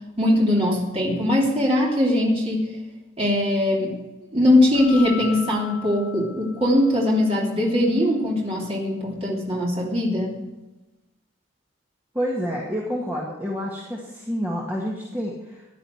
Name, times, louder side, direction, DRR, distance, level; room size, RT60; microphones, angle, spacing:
voice 1, 0.2-2.7 3.2-4.0 4.3-10.4, left 1 dB, 30° right, -4 dB, 3.1 m, -21 dB
Keyboard (musical), 4.7-7.1, left 10 dB, 20° left, 5.8 m, -38 dB
voice 2, 12.1-15.7, equal, 10° right, -3 dB, 2.0 m, -28 dB
16.0 x 11.0 x 4.7 m, 1.1 s
head